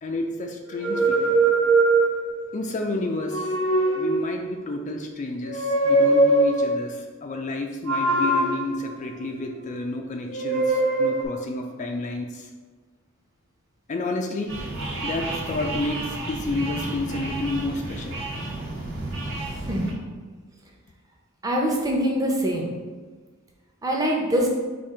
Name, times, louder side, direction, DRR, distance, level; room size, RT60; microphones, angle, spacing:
voice 1, 0.0-1.4 2.5-3.6 4.0-12.5 13.9-14.5 15.0-18.2, left 2 dB, 35° left, 3 dB, 0.3 m, -30 dB
sound 1, 0.7-2.5 3.2-4.5 5.4-6.8 7.9-9.7 10.3-11.3, right 2 dB, 90° right, 1.1 m, -22 dB
sound 2, 14.5-19.9, right 2 dB, 60° right, 1.0 m, -32 dB
voice 2, 21.4-22.7 23.8-24.5, equal, 15° right, -1 dB, 0.7 m, -23 dB
4.3 x 2.5 x 4.7 m, 1.4 s
head